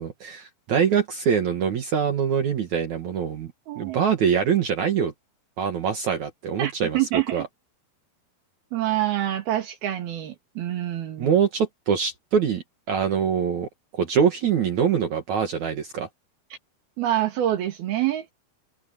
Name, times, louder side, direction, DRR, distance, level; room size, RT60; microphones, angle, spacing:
voice 1, 0.0-5.1 5.6-7.0 7.3-7.4 11.2-16.1, right 7 dB, 55° right, 2.7 m, -24 dB
voice 2, 3.7-4.0 6.6-7.5 8.7-11.4 17.0-18.3, right 13 dB, 75° right, 3.8 m, -26 dB
omnidirectional pair, 4.5 m